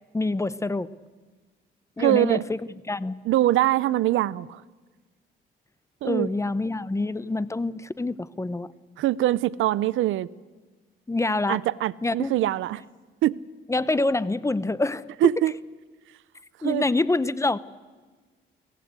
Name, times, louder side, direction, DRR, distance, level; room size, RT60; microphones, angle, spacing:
voice 1, 0.1-0.9 2.0-2.6 2.9-3.2 6.0-8.7 11.1-11.6 12.0-12.3 13.7-15.0 16.6-17.6, left 2 dB, 15° left, 0.8 m, -26 dB
voice 2, 2.0-2.4 3.3-4.6 6.0-6.3 9.0-10.3 11.5-12.8 13.2-13.4 15.2-15.5 16.6-16.8, right 14 dB, 80° right, 0.6 m, -23 dB
23.5 x 17.5 x 8.2 m
cardioid pair, 90°, 20 cm